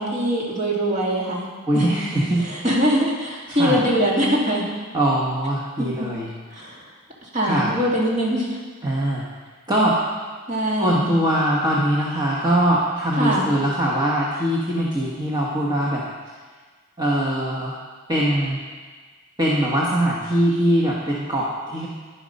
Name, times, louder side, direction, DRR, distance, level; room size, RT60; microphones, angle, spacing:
voice 1, 0.0-2.0 2.5-4.7 5.8-6.1 6.5-6.8 7.3-8.6 10.5-11.1 13.1-13.5, equal, 35° right, -3 dB, 2.4 m, -22 dB
voice 2, 1.7-2.5 3.5-3.9 4.9-6.3 7.4-7.7 8.8-9.2 9.7-10.0 10.8-16.0 17.0-17.7 18.1-18.6 19.4-21.9, right 1 dB, 20° right, -5 dB, 1.3 m, -22 dB
10.5 x 10.5 x 5.4 m, 1.5 s
head